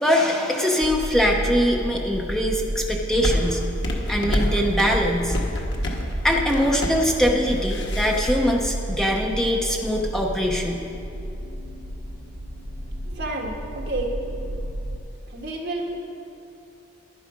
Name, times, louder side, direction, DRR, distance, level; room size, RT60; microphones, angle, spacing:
voice 1, 0.0-3.6 4.1-5.4 6.2-10.8, equal, ahead, 0 dB, 0.8 m, -22 dB
sound 1, 0.8-15.0, right 1 dB, 80° right, 3.3 m, -31 dB
sound 2, 3.2-8.4, left 1 dB, 75° left, 1.5 m, -28 dB
voice 2, 13.0-14.1 15.3-15.9, right 2 dB, 65° right, 0 dB, 1.6 m, -30 dB
11.5 x 10.5 x 5.1 m, 2.8 s
head